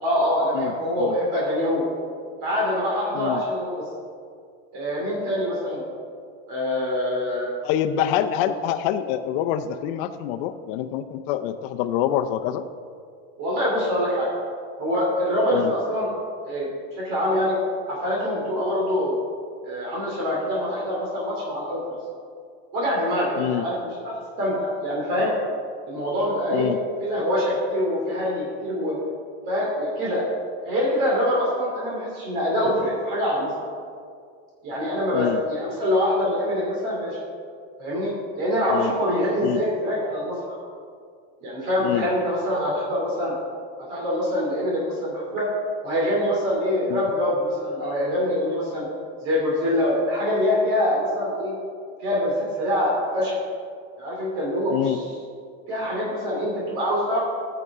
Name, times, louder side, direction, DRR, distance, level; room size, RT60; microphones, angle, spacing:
voice 1, 0.0-1.9 2.4-3.8 4.7-5.8 6.5-7.5 13.4-14.3 14.8-16.1 16.4-17.6 17.9-19.2 19.6-22.0 22.7-25.3 25.9-26.7 27.0-29.0 29.5-30.3 30.6-33.7 34.6-37.2 37.8-40.6 41.4-43.3 43.9-45.5 45.8-48.9 49.2-51.5 52.0-53.4 54.0-55.0 55.7-57.2, left 1 dB, 55° right, -4 dB, 2.9 m, -24 dB
voice 2, 7.6-12.7 15.5-15.7 23.4-23.6 26.5-26.8 35.1-35.4 38.7-38.9 39.4-39.6 41.8-42.1 46.9-47.0 54.7-55.0, left 11 dB, 60° left, 8 dB, 0.6 m, -26 dB
15.0 x 6.8 x 3.6 m, 2.2 s
cardioid pair, 160°, 32 cm